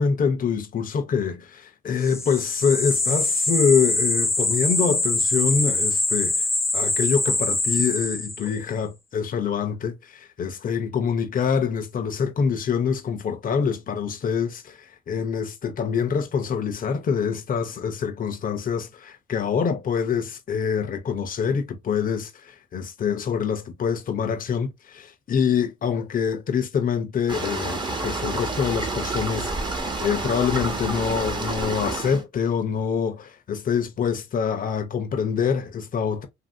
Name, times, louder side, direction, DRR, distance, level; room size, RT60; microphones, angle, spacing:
voice 1, 0.0-6.4 6.7-29.5 30.0-36.3, left 6 dB, 45° left, 0.8 m, -25 dB
sound 1, 2.0-8.6, left 2 dB, 15° left, 0.5 m, -24 dB
sound 2, 27.3-32.2, right 2 dB, 25° right, 1.0 m, -29 dB
2.9 x 2.7 x 2.8 m
cardioid pair, 85°, 19 cm